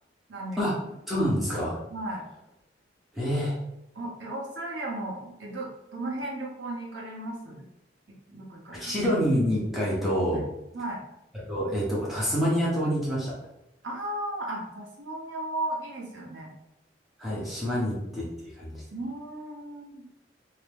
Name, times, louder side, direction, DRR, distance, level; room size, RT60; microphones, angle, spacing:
voice 1, 0.3-0.6 1.9-2.2 3.9-7.7 8.3-8.9 10.3-10.4 10.7-11.0 13.8-16.5 17.7-17.9 18.9-20.0, right 1 dB, 80° right, -2 dB, 1.1 m, -35 dB
voice 2, 1.1-1.8 3.1-3.6 8.7-10.4 11.3-13.3 17.2-18.8, equal, ahead, -6 dB, 1.2 m, -27 dB
4.3 x 2.9 x 3.5 m, 0.88 s
head